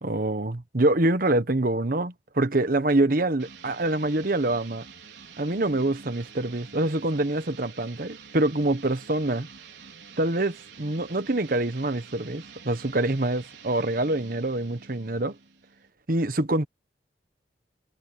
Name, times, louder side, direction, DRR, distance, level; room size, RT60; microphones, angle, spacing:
voice 1, 0.0-4.8 5.4-9.5 10.2-15.4 16.1-16.7, right 2 dB, 50° right, 1.3 m, -25 dB
sound 1, 3.4-15.9, right 5 dB, 85° right, 4.9 m, -47 dB
head